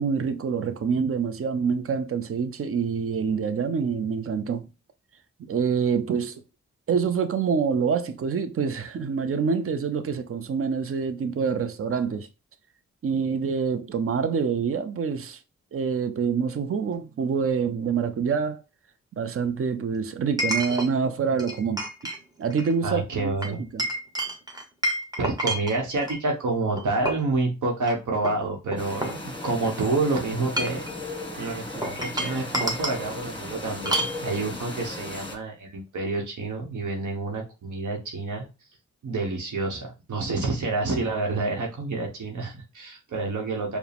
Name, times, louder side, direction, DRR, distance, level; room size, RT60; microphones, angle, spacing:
voice 1, 0.0-4.7 5.5-6.4 6.9-12.3 13.0-15.4 15.7-18.6 19.2-21.8 22.4-23.9, right 6 dB, 45° right, 0.6 m, -26 dB
Chink clink, 16.9-17.0 20.4-20.9 21.4-22.2 22.5-22.7 23.4-26.2 26.8-27.3 27.8-27.9 28.2-29.7 30.4-30.9 31.8-33.0 33.8-34.2, right 1 dB, 15° right, 1.2 m, -29 dB
voice 2, 22.8-23.6 25.2-30.9 31.4-38.5 39.0-43.8, right 3 dB, 70° right, 1.1 m, -28 dB
sound 1, 28.8-35.3, left 2 dB, 15° left, 1.4 m, -36 dB
4.6 x 2.3 x 3.3 m
cardioid pair, 55°, 31 cm